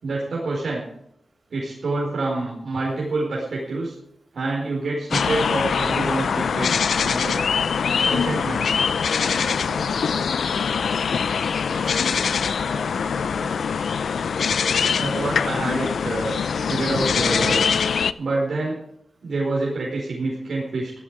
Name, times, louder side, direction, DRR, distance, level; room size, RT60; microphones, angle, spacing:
voice 1, 0.0-0.8 1.5-3.9 4.3-7.4 8.0-8.8 15.0-17.7 18.2-18.8 19.2-20.9, right 2 dB, 70° right, -4 dB, 4.7 m, -27 dB
sound 1, 5.1-18.1, left 6 dB, 85° left, 0.5 m, -23 dB
voice 2, 9.3-11.0 11.4-13.5, right 1 dB, 45° right, -1 dB, 7.0 m, -41 dB
15.5 x 12.5 x 5.0 m, 0.74 s
wide cardioid pair, 125°, 0 cm